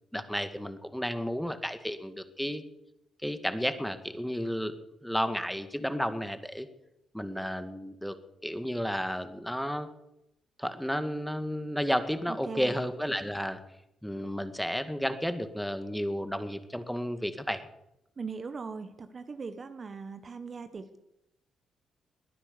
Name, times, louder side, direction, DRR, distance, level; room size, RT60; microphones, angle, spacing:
voice 1, 0.1-2.6 3.2-4.7 5.0-6.7 7.1-8.2 8.4-9.9 10.6-13.6 14.0-17.6, equal, ahead, 10 dB, 1.9 m, -32 dB
voice 2, 12.3-12.8 18.2-21.0, right 5 dB, 45° right, 10 dB, 1.5 m, -40 dB
20.5 x 9.9 x 6.9 m, 0.85 s
supercardioid pair, 55°, 0 cm